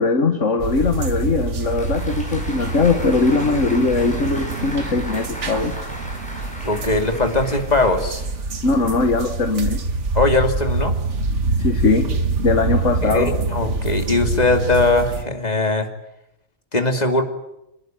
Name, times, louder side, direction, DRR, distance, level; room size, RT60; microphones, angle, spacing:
voice 1, 0.0-5.7 8.6-9.8 11.6-12.1 12.4-13.3, left 3 dB, 70° left, 5 dB, 2.0 m, -20 dB
sound 1, 0.6-15.2, right 3 dB, 65° right, 1.8 m, -25 dB
Applause, 1.5-8.6, equal, 5° left, 6.5 m, -36 dB
voice 2, 6.6-8.2 10.1-10.9 13.0-15.9 16.7-17.2, left 2 dB, 30° left, 5 dB, 2.7 m, -20 dB
26.0 x 20.0 x 9.1 m, 0.86 s
omnidirectional pair, 1.3 m